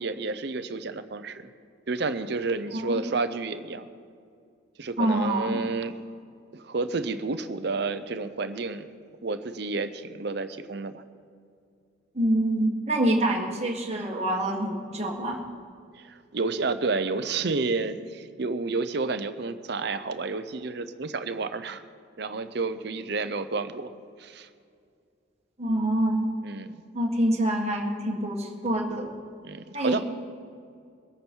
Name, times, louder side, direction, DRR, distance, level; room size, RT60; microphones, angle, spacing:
voice 1, 0.0-1.5 1.9-3.9 4.8-5.9 6.5-8.9 9.2-11.0 13.2-13.4 15.9-21.8 22.2-23.9 24.2-24.5 26.4-26.8 29.4-30.0, right 3 dB, 55° right, 10 dB, 0.7 m, -30 dB
voice 2, 5.0-5.6 12.1-15.4 25.6-26.3 26.9-29.1 29.7-30.0, right 1 dB, 35° right, 0 dB, 1.7 m, -26 dB
22.0 x 8.8 x 4.6 m, 2.3 s
head